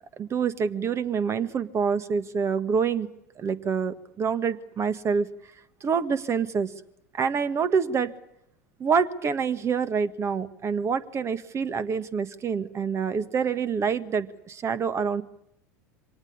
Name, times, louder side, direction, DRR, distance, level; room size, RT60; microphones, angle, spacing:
voice 1, 0.2-3.1 3.4-5.3 5.8-6.7 7.1-8.1 8.8-15.2, right 6 dB, 35° right, 13 dB, 1.7 m, -26 dB
25.0 x 19.0 x 9.7 m, 0.79 s
hypercardioid pair, 80°, 9 cm